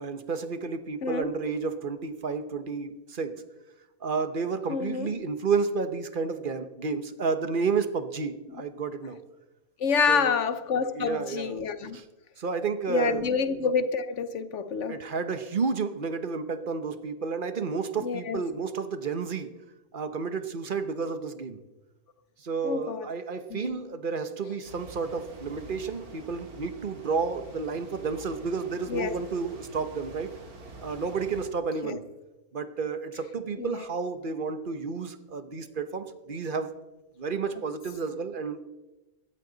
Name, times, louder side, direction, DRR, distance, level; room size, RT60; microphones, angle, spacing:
voice 1, 0.0-3.4 4.0-9.2 10.1-10.4 10.9-11.6 11.9-12.0 12.4-13.3 14.9-19.5 19.9-21.6 22.4-30.3 30.8-32.1 32.5-36.7 37.2-38.6, right 5 dB, 40° right, 1.0 m, -31 dB
voice 2, 1.0-1.3 4.7-5.1 9.8-12.0 12.9-15.0 18.0-18.4 22.6-23.0 23.5-23.8 28.9-29.1 31.8-32.0 33.6-33.8, left 6 dB, 60° left, 1.1 m, -28 dB
sound 1, 24.6-31.5, right 3 dB, 85° right, 2.7 m, -47 dB
16.5 x 14.0 x 4.0 m
omnidirectional pair, 1.5 m